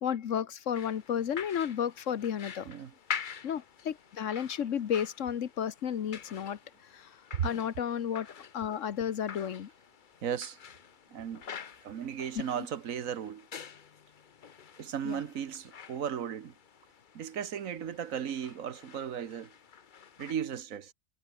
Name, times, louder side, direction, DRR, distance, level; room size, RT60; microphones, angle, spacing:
voice 1, 0.0-2.7 3.4-6.6 6.9-7.1 7.4-8.3 8.5-9.7 12.3-12.7 15.0-15.2, left 8 dB, 65° left, 1.3 m, -32 dB
sound 1, 0.7-20.3, left 7 dB, 40° left, 0.9 m, -47 dB
voice 2, 10.2-10.6 11.1-11.4 11.8-13.5 14.8-16.5 17.1-19.5 20.2-20.9, right 8 dB, 80° right, 1.5 m, -36 dB
omnidirectional pair, 1.4 m